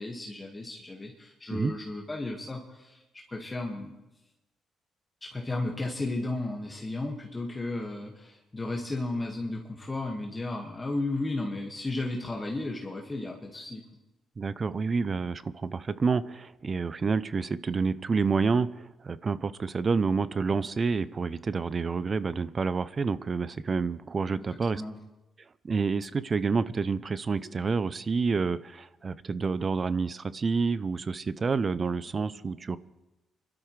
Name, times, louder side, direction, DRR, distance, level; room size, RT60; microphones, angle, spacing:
voice 1, 0.0-3.0 3.3-4.0 5.2-13.8 24.7-25.0, left 2 dB, 20° left, 0 dB, 1.7 m, -34 dB
voice 2, 14.4-24.8 25.6-32.8, right 4 dB, 35° right, 16 dB, 0.5 m, -28 dB
27.0 x 12.5 x 3.2 m, 1.0 s
cardioid pair, 90°, 0 cm